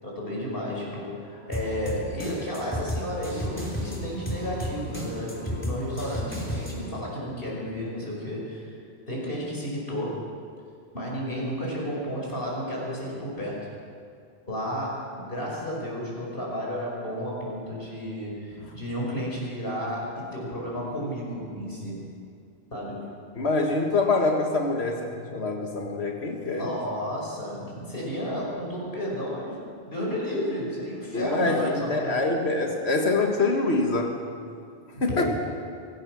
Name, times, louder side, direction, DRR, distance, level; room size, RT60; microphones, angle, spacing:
voice 1, 0.0-8.8 9.1-10.2 10.9-13.7 14.5-22.1 22.7-23.1 26.4-29.6 29.9-32.2 35.1-35.3, equal, 65° left, -4 dB, 5.6 m, -32 dB
sound 1, 1.5-7.0, equal, 10° left, 3.4 m, -33 dB
voice 2, 23.4-26.7 31.1-34.1 35.0-35.3, left 3 dB, 85° left, 2 dB, 1.9 m, -25 dB
25.0 x 16.5 x 6.3 m, 2.4 s
omnidirectional pair, 1.1 m